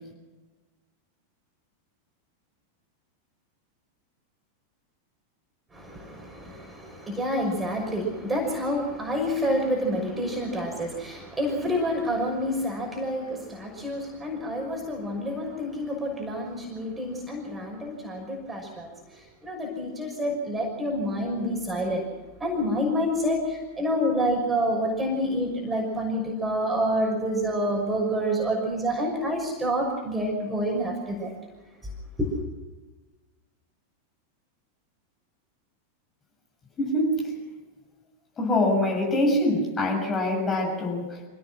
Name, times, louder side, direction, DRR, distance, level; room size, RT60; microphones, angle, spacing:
voice 1, 5.7-22.0 22.4-31.3 31.8-31.9 32.2-32.3, equal, 10° right, 0 dB, 6.0 m, -28 dB
voice 2, 36.8-37.3 38.4-41.3, left 1 dB, 20° left, 0 dB, 7.2 m, -24 dB
26.5 x 17.5 x 6.3 m, 1.3 s
figure-of-eight pair, 90°, 0 cm